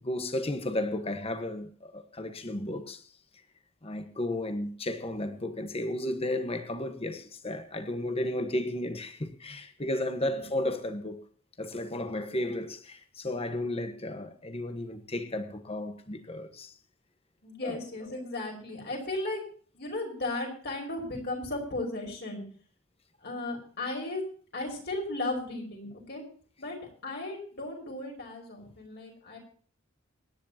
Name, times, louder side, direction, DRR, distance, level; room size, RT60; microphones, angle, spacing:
voice 1, 0.0-3.1 3.8-11.2 11.6-16.7 17.6-17.8, left 1 dB, 30° left, 1.3 m, -33 dB
voice 2, 17.4-19.4 19.7-22.4 23.2-26.2 26.6-29.4, left 2 dB, 55° left, 5.3 m, -35 dB
25.5 x 10.0 x 2.9 m
head